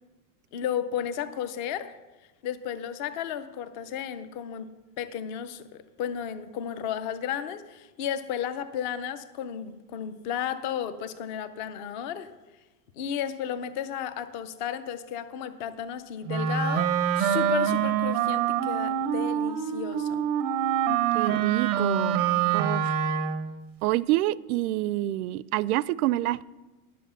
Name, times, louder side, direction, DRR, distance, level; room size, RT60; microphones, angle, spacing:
voice 1, 0.5-1.9 2.4-4.7 5.0-12.3 13.0-20.2, left 9 dB, 35° left, 0.5 m, -33 dB
Wind instrument woodwind instrument, 16.3-23.5, right 9 dB, 30° right, 0.4 m, -25 dB
voice 2, 21.1-22.2 22.5-22.9 23.8-26.4, right 16 dB, 80° right, 0.5 m, -27 dB
11.0 x 7.7 x 6.7 m
supercardioid pair, 180°, 44 cm